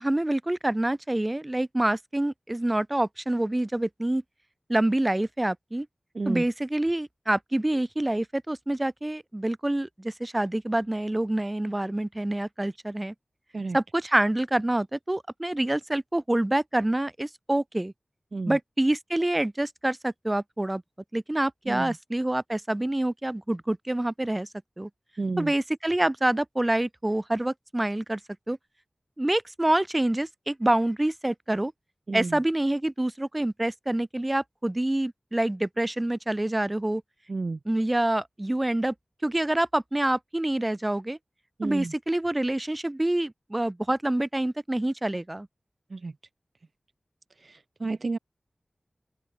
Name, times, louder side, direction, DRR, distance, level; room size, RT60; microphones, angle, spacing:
voice 1, 0.0-4.2 4.7-5.9 6.3-13.1 13.7-17.9 18.5-20.8 21.1-24.5 24.8-24.9 25.4-28.2 28.5-28.6 29.2-31.7 32.1-37.0 37.6-38.9 39.2-41.2 41.6-45.5, right 1 dB, 20° right, 0.9 m, -26 dB
voice 2, 25.2-25.5 32.1-32.4 37.3-37.6 41.6-41.9 45.9-46.1 47.4-48.2, right 3 dB, 60° right, 0.5 m, -31 dB
open air
wide cardioid pair, 75°, 0 cm